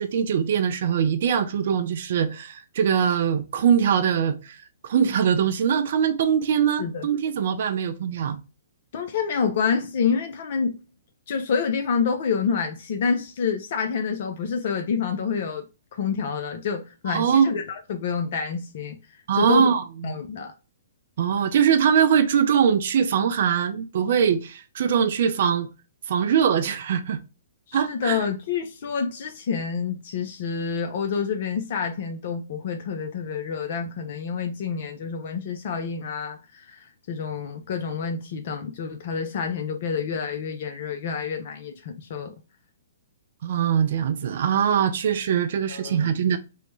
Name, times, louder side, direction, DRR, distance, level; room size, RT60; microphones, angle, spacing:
voice 1, 0.0-8.4 17.1-17.5 19.3-20.2 21.2-25.7 26.1-27.2 27.7-28.2 43.4-46.4, right 8 dB, 55° right, 0.3 m, -22 dB
voice 2, 8.9-10.8 11.3-15.7 15.9-19.7 20.0-20.5 27.7-42.3 45.7-46.1, left 6 dB, 55° left, 0.4 m, -28 dB
3.0 x 2.0 x 3.1 m
figure-of-eight pair, 120°, 0 cm